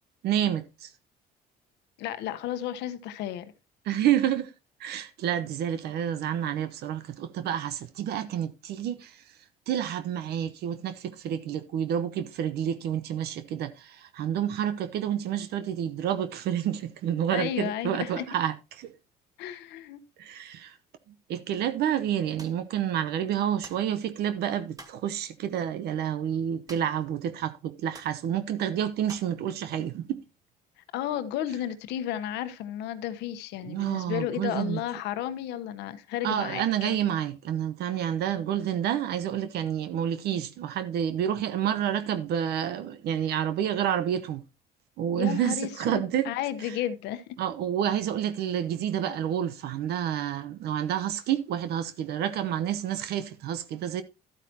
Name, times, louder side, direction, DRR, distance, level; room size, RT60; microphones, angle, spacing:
voice 1, 0.2-0.9 3.8-4.5 4.8-9.4 9.7-18.9 20.2-20.8 21.3-30.2 33.6-34.8 36.2-44.4 45.0-46.3 46.6-46.8 47.4-54.0, right 10 dB, 75° right, 0.9 m, -29 dB
voice 2, 2.0-3.5 17.3-18.2 19.4-20.0 30.9-37.0 45.2-47.3, left 11 dB, 90° left, 1.1 m, -33 dB
sound 1, 22.4-22.6 23.6-23.9 24.8-25.1 26.7-27.1 27.3-27.4 27.9-28.2 29.1-29.4, right 2 dB, 20° right, 1.7 m, -48 dB
12.5 x 8.9 x 2.8 m
cardioid pair, 110°, 17 cm